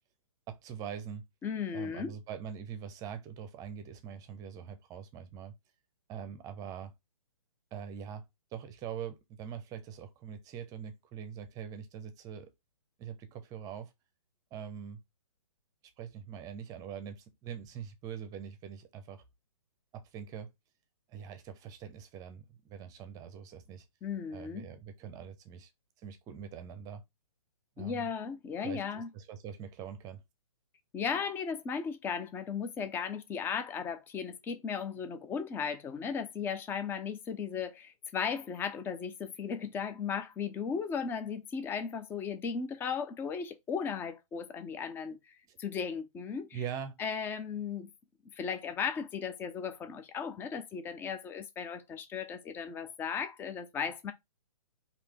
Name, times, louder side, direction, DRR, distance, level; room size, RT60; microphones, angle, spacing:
voice 1, 0.5-1.2 1.7-5.5 6.1-6.9 7.7-8.2 8.5-12.5 13.0-13.9 14.5-15.0 16.0-19.2 19.9-20.5 21.1-23.8 24.3-25.7 26.0-27.0 27.8-28.1 28.6-30.2 45.5-45.6 46.5-46.9, right 8 dB, 20° right, 0.8 m, -43 dB
voice 2, 1.4-2.1 24.0-24.7 27.8-29.1 30.9-45.2 45.6-46.6 47.0-47.9 48.3-54.1, left 6 dB, 10° left, 0.5 m, -36 dB
4.8 x 2.8 x 3.5 m
hypercardioid pair, 135°, 18 cm